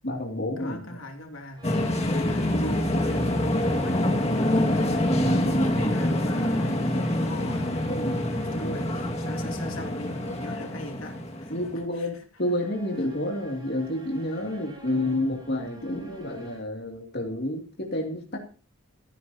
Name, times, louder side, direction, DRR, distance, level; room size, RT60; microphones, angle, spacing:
voice 1, 0.0-0.8 5.6-5.7 6.7-6.9 7.9-8.2 8.5-8.8 11.5-18.5, left 1 dB, 50° left, 0 dB, 2.7 m, -30 dB
voice 2, 0.6-7.7 8.0-11.5 11.9-12.1, left 1 dB, 70° left, 2 dB, 3.0 m, -39 dB
sound 1, 1.6-11.8, left 1 dB, 30° left, 2.0 m, -26 dB
sound 2, 1.6-10.8 12.4-16.6, equal, 20° right, 6.1 m, -50 dB
16.0 x 15.0 x 2.9 m, 0.37 s
head